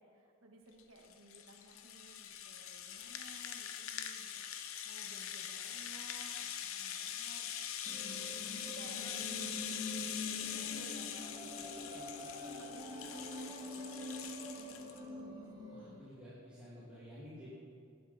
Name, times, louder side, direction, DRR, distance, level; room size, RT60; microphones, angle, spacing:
voice 1, 0.0-7.5 7.8-12.1 12.6-14.6 14.9-15.2, right 2 dB, 70° right, 1 dB, 1.8 m, -58 dB
Rattle (instrument), 0.8-15.0, left 9 dB, 70° left, 0.8 m, -43 dB
sound 1, 7.9-15.9, left 1 dB, 20° right, 2.5 m, -45 dB
voice 2, 15.7-17.5, equal, 5° right, -11 dB, 2.8 m, -52 dB
18.5 x 10.5 x 4.4 m, 2.3 s
head